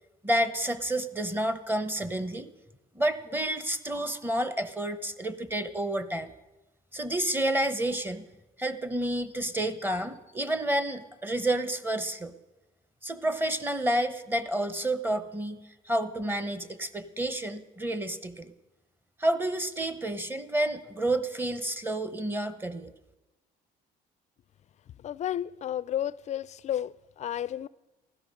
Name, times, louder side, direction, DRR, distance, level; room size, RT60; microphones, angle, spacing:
voice 1, 0.2-2.5 2.9-6.3 6.9-8.3 8.6-12.3 13.0-18.5 19.2-22.9, right 1 dB, 10° right, 1.0 m, -30 dB
voice 2, 25.0-27.7, left 11 dB, 45° left, 0.4 m, -32 dB
15.5 x 12.0 x 6.5 m
cardioid pair, 110°, 17 cm